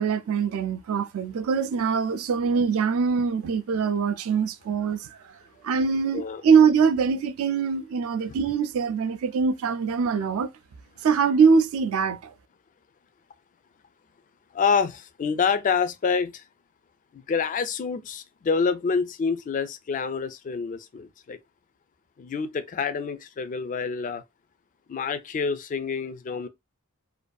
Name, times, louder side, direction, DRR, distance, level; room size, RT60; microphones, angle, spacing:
voice 1, 0.0-5.3 5.6-10.5 11.0-12.3, right 6 dB, 65° right, 0.3 m, -23 dB
voice 2, 14.5-16.4 17.1-21.4 22.2-24.2 24.9-26.5, left 5 dB, 35° left, 0.3 m, -27 dB
2.5 x 2.4 x 2.2 m
head